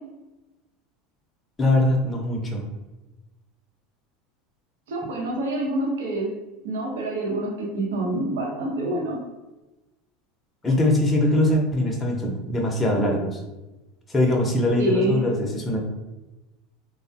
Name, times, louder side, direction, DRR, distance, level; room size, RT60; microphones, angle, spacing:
voice 1, 1.6-2.6 10.6-13.4 14.1-15.8, left 1 dB, 15° left, -1 dB, 0.6 m, -22 dB
voice 2, 4.9-6.3 6.6-9.2 14.8-15.2, right 1 dB, 85° right, -3 dB, 0.8 m, -26 dB
3.4 x 2.1 x 2.6 m, 1.1 s
supercardioid pair, 100°, 0 cm